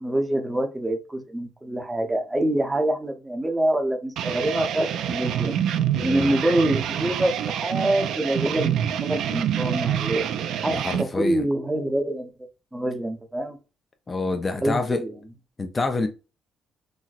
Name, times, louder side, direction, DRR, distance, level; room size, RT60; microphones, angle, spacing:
voice 1, 0.0-5.5 6.0-8.7 9.0-10.2 10.6-12.3 12.7-13.6 14.6-15.1, right 1 dB, 15° right, 0.7 m, -25 dB
sound 1, 4.2-11.0, right 9 dB, 80° right, 0.3 m, -26 dB
voice 2, 6.0-6.3 10.7-11.5 14.1-15.0 15.6-16.1, left 3 dB, 30° left, 0.4 m, -27 dB
4.0 x 2.0 x 2.4 m
cardioid pair, 90°, 0 cm